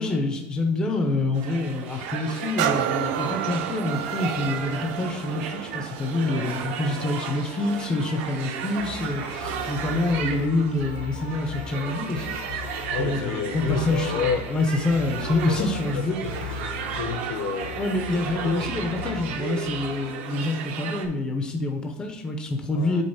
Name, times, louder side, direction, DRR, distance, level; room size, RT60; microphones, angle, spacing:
voice 1, 0.0-12.3 13.0-16.2 17.8-23.0, left 2 dB, 15° left, 3 dB, 0.5 m, -26 dB
sound 1, 1.3-21.1, right 7 dB, 75° right, 0.9 m, -35 dB
sound 2, 2.6-10.2 10.7-10.9, right 11 dB, 55° right, 0.4 m, -32 dB
sound 3, 8.8-20.1, left 5 dB, 85° left, 2.0 m, -38 dB
voice 2, 12.9-14.5 15.5-19.4 22.7-23.0, left 6 dB, 60° left, 7 dB, 0.8 m, -32 dB
5.3 x 3.8 x 5.7 m, 0.91 s
cardioid pair, 170°, 7 cm